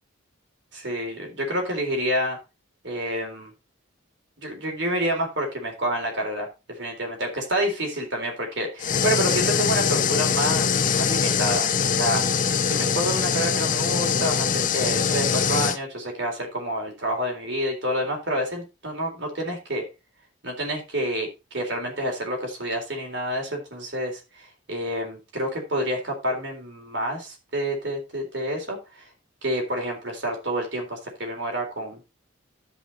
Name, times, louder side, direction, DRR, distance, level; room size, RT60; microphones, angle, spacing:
voice 1, 0.7-2.4 2.8-3.5 4.4-12.2 12.7-19.8 20.4-29.0 29.4-32.0, equal, 55° right, 1 dB, 3.9 m, -28 dB
sound 1, 8.8-15.8, left 6 dB, 40° left, 0.6 m, -23 dB
12.5 x 5.5 x 4.2 m, 0.27 s
head